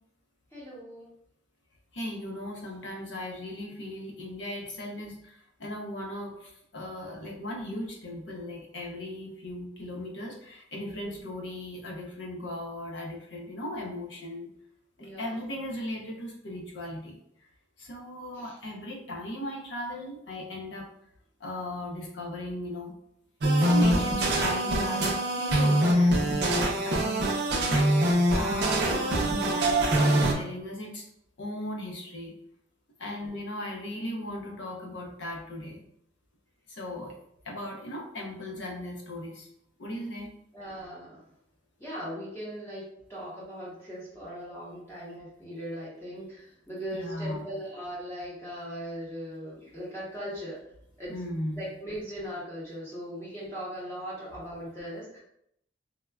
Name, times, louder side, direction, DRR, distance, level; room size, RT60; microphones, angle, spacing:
voice 1, 0.5-1.1 10.9-11.2 15.0-15.4 18.3-18.5 33.1-33.4 40.5-41.2 41.8-42.8 43.1-50.6 51.0-51.1 51.6-55.2, equal, 15° left, -7 dB, 0.7 m, -39 dB
voice 2, 1.9-14.5 15.0-17.2 17.8-20.9 21.4-22.9 23.5-25.0 25.4-27.1 27.6-31.0 31.4-32.3 33.0-35.8 36.7-37.2 37.4-39.5 39.8-40.3 46.9-47.5 51.1-51.7, left 1 dB, 80° left, 0 dB, 0.6 m, -37 dB
sound 1, 23.4-30.3, right 1 dB, 60° right, 0.5 m, -24 dB
3.5 x 2.1 x 2.2 m, 0.73 s
head